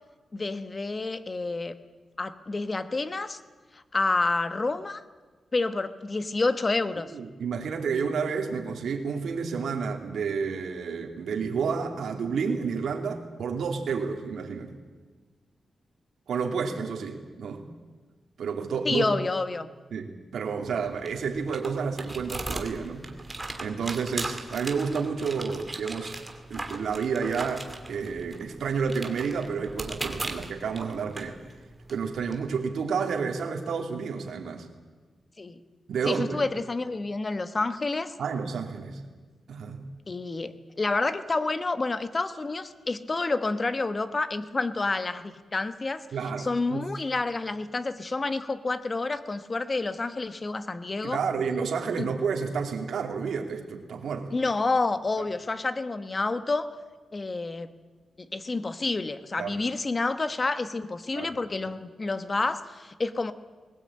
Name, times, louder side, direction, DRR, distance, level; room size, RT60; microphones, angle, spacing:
voice 1, 0.3-1.8 2.2-3.4 3.7-5.0 5.5-7.1 18.8-19.7 35.4-35.6 36.1-38.1 40.1-46.1 46.4-51.2 52.0-52.1 54.3-56.7 57.1-57.7 58.3-63.3, left 3 dB, 30° left, 11 dB, 1.2 m, -29 dB
voice 2, 7.1-14.7 16.3-17.7 18.4-19.1 19.9-23.1 23.6-26.1 26.5-31.4 31.9-34.7 35.9-36.4 38.2-39.0 39.5-39.8 46.1-46.8 51.0-54.3 59.4-59.6 61.1-61.3, right 5 dB, 80° right, 2 dB, 2.9 m, -30 dB
sound 1, 20.6-32.3, right 2 dB, 20° right, 2.4 m, -39 dB
20.5 x 18.5 x 8.8 m, 1.4 s
wide cardioid pair, 110°, 0 cm